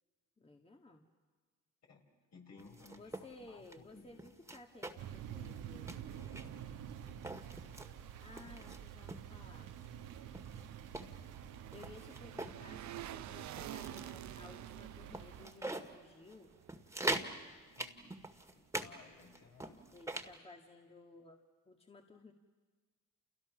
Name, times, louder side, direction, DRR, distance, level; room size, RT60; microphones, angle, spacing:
voice 1, 0.4-1.1 3.0-6.1 8.2-9.7 11.7-16.5 19.9-21.4 21.7-22.3, left 3 dB, 20° left, 3 dB, 1.9 m, -56 dB
voice 2, 2.3-4.2 10.9-11.2 17.7-18.2 18.5-19.8, left 4 dB, 55° left, 1 dB, 5.7 m, -58 dB
sound 1, 2.6-3.3 3.6-3.8 4.2-5.2 5.5-5.6 5.9-6.6 7.1-7.9 8.4-9.3 9.8-9.9 10.3-12.6 13.0-13.2 13.6-14.2 14.7-14.8 15.1-15.9 16.3-16.4 16.7-17.3 17.8-18.9 19.2-20.3, right 2 dB, 10° right, 1.9 m, -42 dB
sound 2, 5.0-15.5, right 9 dB, 85° right, 1.7 m, -48 dB
sound 3, 10.2-17.4 17.7-17.8, right 13 dB, 65° right, 0.8 m, -51 dB
29.5 x 29.0 x 6.3 m, 1.4 s
cardioid pair, 80°, 31 cm